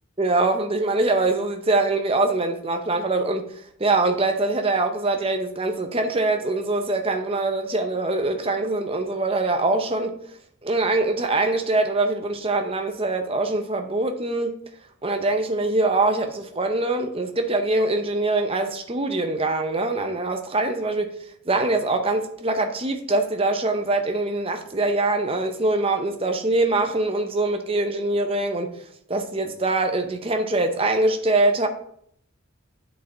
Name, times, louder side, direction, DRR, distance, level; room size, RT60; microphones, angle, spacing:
voice 1, 0.2-3.5 3.8-10.1 10.6-14.6 15.0-21.1 21.5-28.7 29.1-31.7, right 2 dB, 25° right, 0.8 m, -23 dB
8.3 x 6.7 x 3.9 m
head